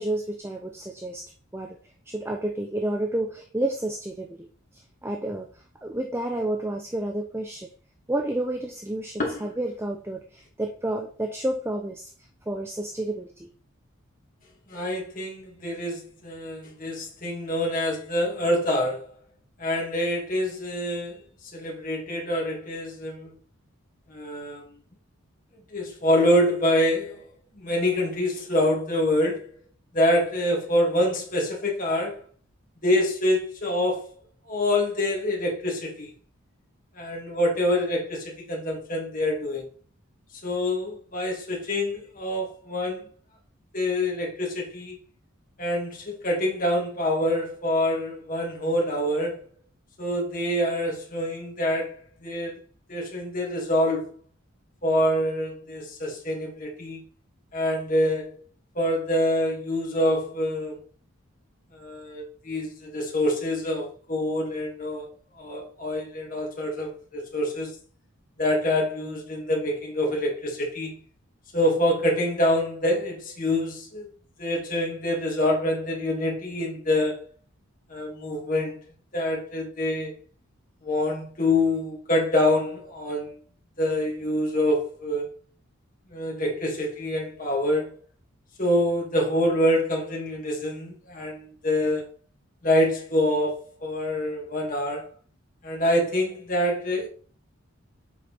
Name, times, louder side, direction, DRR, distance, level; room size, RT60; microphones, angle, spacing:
voice 1, 0.0-1.8 2.1-7.7 8.1-12.1 12.5-13.5, right 1 dB, 10° right, 0.5 m, -30 dB
voice 2, 14.7-19.1 19.6-21.2 21.5-23.3 24.1-24.6 25.7-27.3 27.6-29.5 29.9-32.2 32.8-34.1 34.5-36.1 36.9-39.6 40.4-43.1 43.7-45.0 45.6-49.4 50.0-52.6 52.9-54.1 54.8-57.0 57.5-58.4 58.8-60.8 61.7-65.1 65.4-67.7 68.4-71.0 71.5-74.1 74.4-77.3 77.9-78.8 79.1-80.2 80.8-83.4 83.8-85.3 86.1-88.0 88.6-92.0 92.6-95.1 95.6-97.1, left 1 dB, 40° left, 2.3 m, -26 dB
7.0 x 4.9 x 4.3 m
head